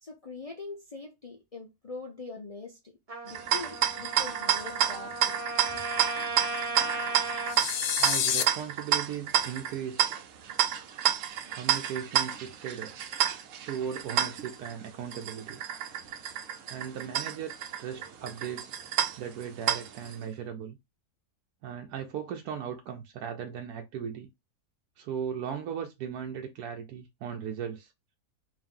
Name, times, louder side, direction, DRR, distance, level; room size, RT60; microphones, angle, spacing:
voice 1, 0.0-3.0 3.2-5.3 5.7-5.8, left 3 dB, 50° left, 0.4 m, -43 dB
Trumpet, 3.1-7.6, right 2 dB, 30° right, 0.9 m, -36 dB
sound 1, 3.3-20.2, right 10 dB, 65° right, 0.9 m, -30 dB
sound 2, 7.5-8.4, left 9 dB, 75° left, 1.0 m, -28 dB
voice 2, 8.0-10.2 11.5-12.9 13.7-15.6 16.7-18.8 19.2-20.8 21.6-24.3 25.0-27.9, right 8 dB, 85° right, 1.1 m, -37 dB
3.7 x 2.6 x 3.6 m
omnidirectional pair, 1.6 m